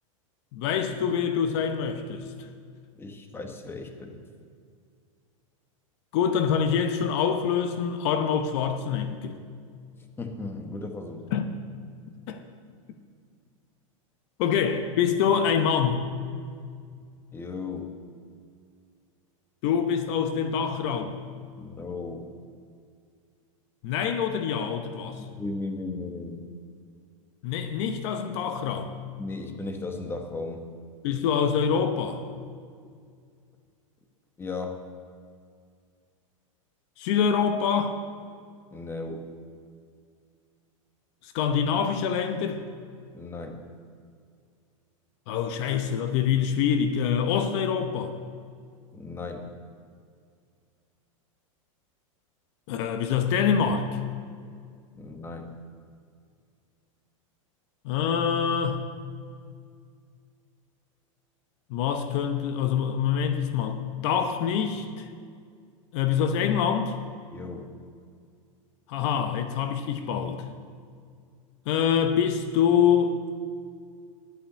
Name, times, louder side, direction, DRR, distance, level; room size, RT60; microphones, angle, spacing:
voice 1, 0.5-2.5 6.1-9.4 11.3-11.5 12.3-12.4 14.4-16.1 19.6-21.2 23.8-25.2 27.4-28.9 31.0-32.2 37.0-38.0 41.2-42.7 45.3-48.1 52.7-53.9 57.8-58.9 61.7-65.1 65.9-67.0 68.9-70.4 71.7-73.3, left 7 dB, 55° left, 8 dB, 0.9 m, -25 dB
voice 2, 3.0-4.2 10.2-11.3 17.3-17.9 21.6-22.3 25.2-26.4 29.2-30.7 34.4-34.8 38.7-39.3 43.1-43.6 48.9-49.5 55.0-55.5 67.3-67.7, left 3 dB, 15° left, 4 dB, 1.2 m, -36 dB
11.5 x 5.7 x 8.5 m, 2.2 s
hypercardioid pair, 120°, 17 cm